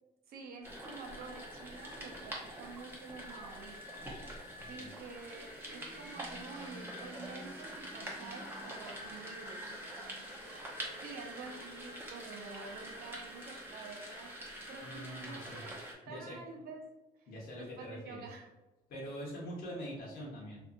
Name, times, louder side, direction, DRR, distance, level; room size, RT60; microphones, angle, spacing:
voice 1, 0.3-4.0 4.6-9.7 11.0-14.3 14.7-15.8 16.1-17.3 17.6-18.5, right 4 dB, 65° right, 2 dB, 0.7 m, -49 dB
sound 1, 0.6-15.9, equal, 10° right, 0.8 m, -45 dB
voice 2, 4.6-4.9 14.8-15.6 16.1-16.4 17.3-18.3 18.9-20.6, equal, 60° left, -4 dB, 1.0 m, -44 dB
2.6 x 2.6 x 2.6 m, 1.0 s
cardioid pair, 110°, 17 cm